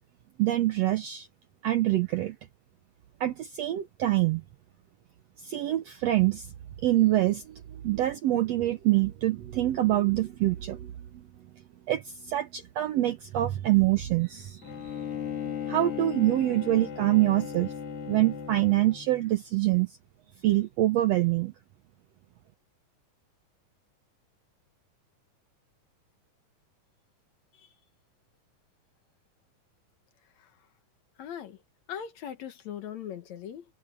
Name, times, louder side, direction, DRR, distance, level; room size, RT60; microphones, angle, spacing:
voice 1, 0.4-1.3 1.6-2.4 3.2-4.4 5.4-6.5 6.8-7.5 7.8-11.2 11.9-14.9 15.7-17.7 18.1-19.9 20.4-21.5, right 15 dB, 75° right, 1.6 m, -25 dB
Bowed string instrument, 14.6-19.3, left 8 dB, 85° left, 5.5 m, -37 dB
voice 2, 31.2-31.6 31.9-33.6, left 9 dB, 65° left, 2.3 m, -39 dB
omnidirectional pair, 3.8 m